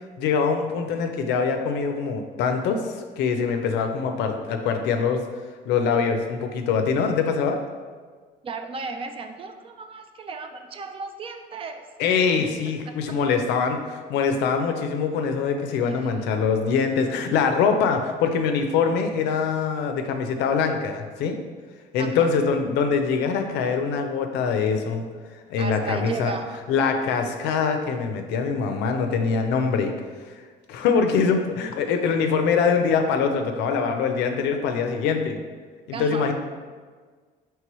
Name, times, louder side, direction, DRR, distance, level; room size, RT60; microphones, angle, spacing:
voice 1, 0.2-2.8 3.2-5.2 5.7-7.6 12.0-21.4 21.9-25.0 25.5-26.3 26.7-29.9 30.7-35.4 35.9-36.3, left 5 dB, 85° left, 5 dB, 0.5 m, -23 dB
voice 2, 8.4-11.9 12.9-13.2 15.9-16.1 22.0-22.3 25.6-26.6 35.9-36.3, right 4 dB, 35° right, 7 dB, 0.4 m, -35 dB
4.6 x 3.2 x 3.0 m, 1.5 s
cardioid pair, 110°, 17 cm